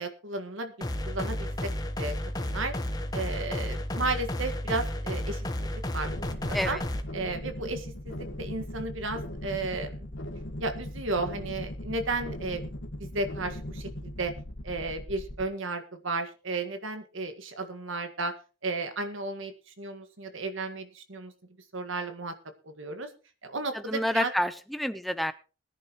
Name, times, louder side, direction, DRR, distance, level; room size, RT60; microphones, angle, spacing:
voice 1, 0.0-1.7 2.0-2.7 3.1-5.7 5.9-6.3 6.6-6.8 7.1-10.0 10.6-12.6 13.0-14.3 14.6-18.3 18.6-21.3 21.7-22.3 22.6-23.1 23.4-24.3, right 3 dB, 75° right, 8 dB, 1.8 m, -34 dB
sound 1, 0.8-7.0, left 1 dB, 20° left, 1.1 m, -32 dB
sound 2, 6.0-15.4, left 1 dB, 65° left, 1.5 m, -39 dB
voice 2, 23.7-25.3, equal, ahead, 11 dB, 0.7 m, -29 dB
21.0 x 10.5 x 3.0 m, 0.35 s
head